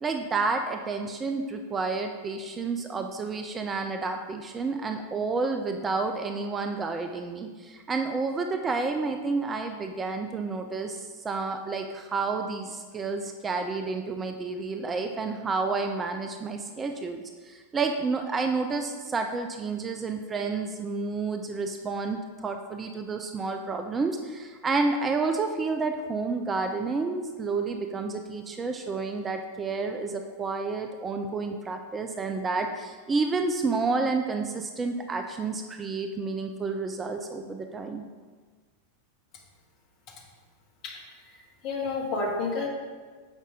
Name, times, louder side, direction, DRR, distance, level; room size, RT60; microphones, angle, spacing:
voice 1, 0.0-38.0, right 4 dB, 20° right, 5 dB, 0.4 m, -30 dB
voice 2, 41.3-42.7, left 3 dB, 40° left, -1 dB, 1.5 m, -30 dB
7.2 x 5.4 x 3.7 m, 1.5 s
figure-of-eight pair, 90°, 0 cm